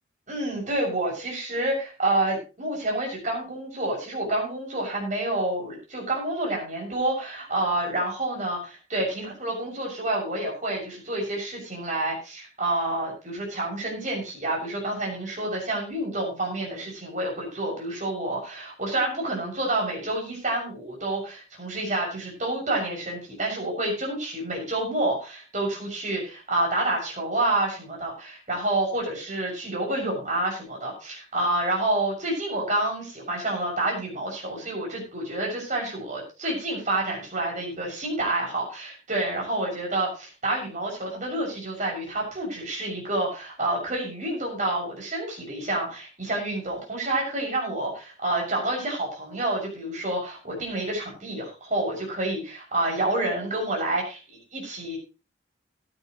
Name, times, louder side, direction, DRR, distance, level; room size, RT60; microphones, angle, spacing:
voice 1, 0.3-55.0, right 2 dB, 40° right, -1 dB, 7.0 m, -28 dB
15.0 x 12.5 x 3.2 m, 0.31 s
head